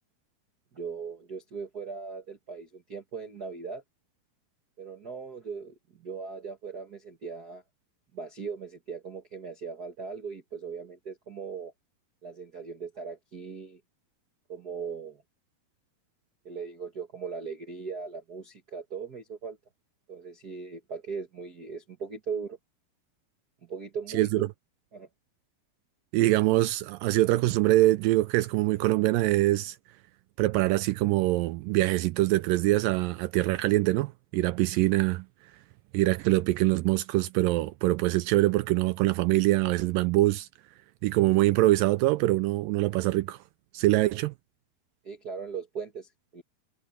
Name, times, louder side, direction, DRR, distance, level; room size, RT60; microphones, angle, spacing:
voice 1, 0.7-3.8 4.8-7.6 8.1-11.7 12.2-13.8 14.5-15.2 16.4-19.6 20.1-22.6 23.6-24.5 24.9-25.1 45.0-46.4, right 5 dB, 65° right, 0.9 m, -39 dB
voice 2, 26.1-29.8 30.4-35.3 35.9-40.5 41.0-43.4 43.7-44.3, right 18 dB, 85° right, 2.0 m, -24 dB
omnidirectional pair, 4.4 m